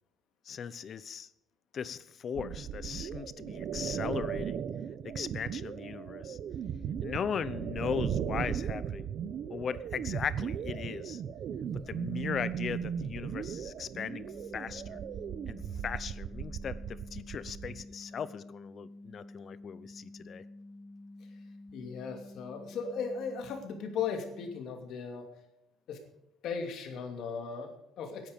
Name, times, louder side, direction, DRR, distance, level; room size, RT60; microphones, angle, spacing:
voice 1, 0.4-1.3 1.7-4.6 5.0-6.4 7.0-9.1 9.5-11.2 11.9-15.0 15.5-20.4, left 7 dB, 35° left, 17 dB, 0.7 m, -38 dB
sound 1, 2.3-17.8, right 8 dB, 45° right, 0.8 m, -37 dB
sound 2, 13.9-24.6, left 2 dB, 15° right, 3.0 m, -50 dB
voice 2, 21.7-25.3 25.9-26.0 26.4-28.3, left 6 dB, 55° left, 5 dB, 2.6 m, -37 dB
18.0 x 10.5 x 5.3 m, 0.84 s
cardioid pair, 165°, 0 cm